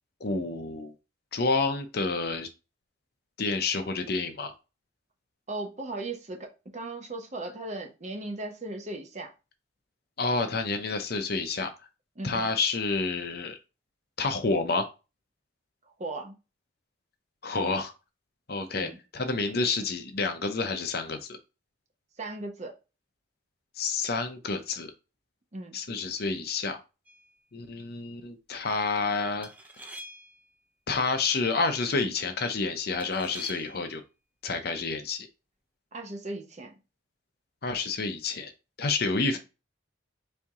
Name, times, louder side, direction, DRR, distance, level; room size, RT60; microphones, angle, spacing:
voice 1, 0.2-0.9 1.3-2.5 3.4-4.5 10.2-11.7 12.2-13.6 14.2-14.9 17.4-17.9 18.5-21.2 23.8-24.9 25.7-26.8 27.5-29.5 30.9-34.0 34.4-35.3 37.6-38.5 38.8-39.4, left 3 dB, 50° left, 0.7 m, -29 dB
voice 2, 5.5-9.3 12.2-12.5 16.0-16.3 18.7-19.0 22.2-22.7 25.5-25.8 35.9-36.7 39.3-39.4, right 2 dB, 35° right, 0.7 m, -37 dB
sound 1, 27.1-27.4 29.4-30.5 33.0-33.9, right 1 dB, 10° right, 0.4 m, -46 dB
4.4 x 2.7 x 3.6 m
head